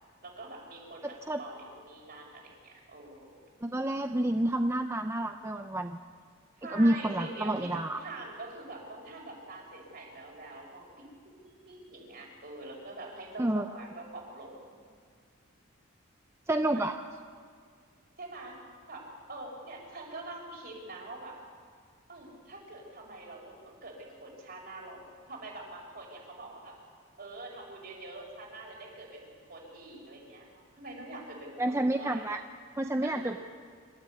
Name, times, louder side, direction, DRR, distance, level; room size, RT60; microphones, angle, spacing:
voice 1, 0.2-3.4 6.6-11.1 11.4-14.8 16.7-16.8 18.2-18.6 18.9-21.3 22.1-25.0 25.3-26.7 27.2-32.3 33.0-33.4, right 2 dB, 50° right, -1 dB, 5.9 m, -45 dB
voice 2, 3.6-6.0 6.7-8.0 13.4-13.6 16.5-16.9 31.6-32.4 32.8-33.4, right 1 dB, 15° right, 6 dB, 0.6 m, -29 dB
26.5 x 13.5 x 8.4 m, 2.1 s
head